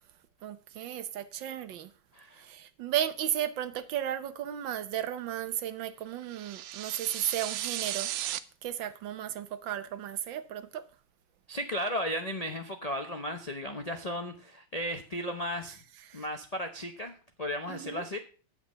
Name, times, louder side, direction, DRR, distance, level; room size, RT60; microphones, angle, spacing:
voice 1, 0.4-1.9 2.3-8.1 8.6-10.8 16.1-16.2 17.7-18.0, right 11 dB, 70° right, 1.5 m, -34 dB
voice 2, 2.1-2.4 11.5-15.8 16.1-17.1 17.4-18.2, equal, 55° left, 0.4 m, -35 dB
sound 1, 6.3-8.4, right 13 dB, 85° right, 1.5 m, -35 dB
9.1 x 5.8 x 6.7 m
omnidirectional pair, 2.2 m